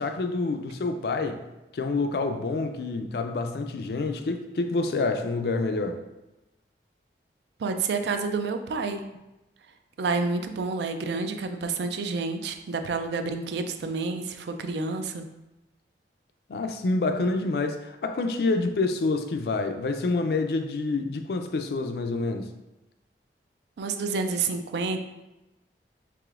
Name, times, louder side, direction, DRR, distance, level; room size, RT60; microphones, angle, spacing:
voice 1, 0.0-1.4 1.7-6.0 16.5-22.5, left 3 dB, 60° left, 0.4 m, -27 dB
voice 2, 7.6-9.0 10.0-15.3 23.8-25.0, right 4 dB, 75° right, 0.4 m, -29 dB
4.8 x 3.3 x 2.4 m
head